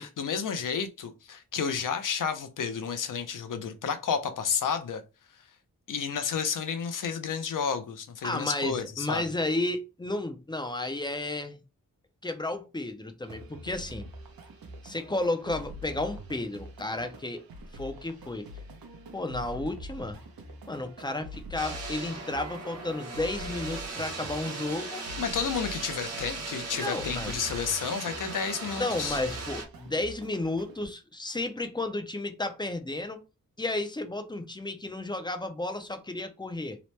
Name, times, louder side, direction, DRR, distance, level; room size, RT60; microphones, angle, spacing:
voice 1, 0.0-5.0 5.9-9.3 25.2-29.2, left 6 dB, 65° left, 0.5 m, -31 dB
voice 2, 8.2-11.6 12.2-14.1 14.8-17.4 17.7-18.5 19.1-20.2 20.7-25.1 26.8-27.3 28.7-33.2 33.6-36.8, left 2 dB, 15° left, 0.3 m, -32 dB
sound 1, 13.2-30.9, equal, 85° right, 0.7 m, -45 dB
sound 2, 21.6-29.7, right 3 dB, 50° right, 0.8 m, -38 dB
2.9 x 2.0 x 3.1 m
wide cardioid pair, 145°, 34 cm